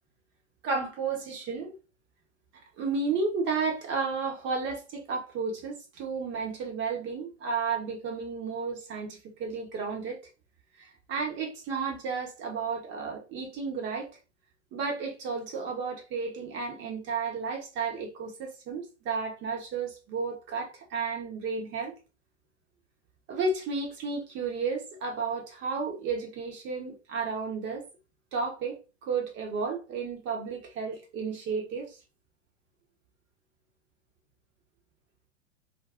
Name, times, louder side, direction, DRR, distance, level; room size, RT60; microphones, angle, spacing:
voice 1, 0.6-1.7 2.8-10.2 10.8-14.1 14.7-21.9 23.3-27.9 28.3-32.0, right 4 dB, 30° right, 1.0 m, -32 dB
2.5 x 2.2 x 3.4 m
hypercardioid pair, 105°, 36 cm